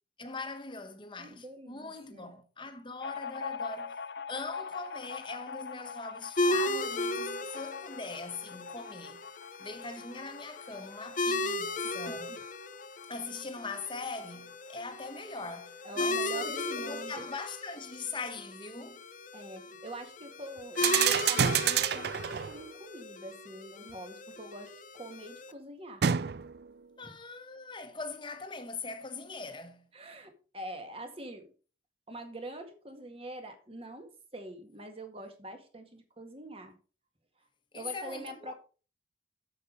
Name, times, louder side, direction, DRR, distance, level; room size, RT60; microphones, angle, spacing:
voice 1, 0.2-4.0 4.3-9.2 9.6-12.3 13.1-19.0 27.0-29.9 37.7-38.5, left 3 dB, 25° left, 1.2 m, -41 dB
voice 2, 1.2-2.3 12.1-12.2 15.8-17.3 19.3-26.0 27.0-27.1 29.9-31.5 32.1-36.7 37.7-38.5, right 1 dB, 30° right, 1.8 m, -44 dB
sound 1, 3.0-16.1 16.4-16.5 16.8-17.6, left 6 dB, 60° left, 0.6 m, -44 dB
sound 2, 6.4-25.5, left 2 dB, 45° left, 1.0 m, -36 dB
sound 3, 20.8-22.7 26.0-26.7, right 8 dB, 60° right, 0.4 m, -28 dB
8.4 x 7.1 x 5.1 m
head